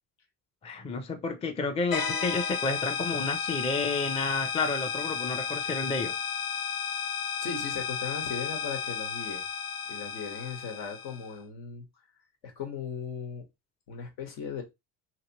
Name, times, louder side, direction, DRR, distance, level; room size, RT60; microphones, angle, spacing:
voice 1, 0.6-6.2, left 3 dB, 15° left, 0.5 m, -31 dB
sound 1, 1.9-11.3, left 6 dB, 50° left, 0.8 m, -33 dB
voice 2, 7.4-9.4 9.9-11.8 12.4-13.4 13.9-14.6, left 6 dB, 70° left, 1.4 m, -37 dB
2.9 x 2.9 x 2.9 m
supercardioid pair, 100°, 46 cm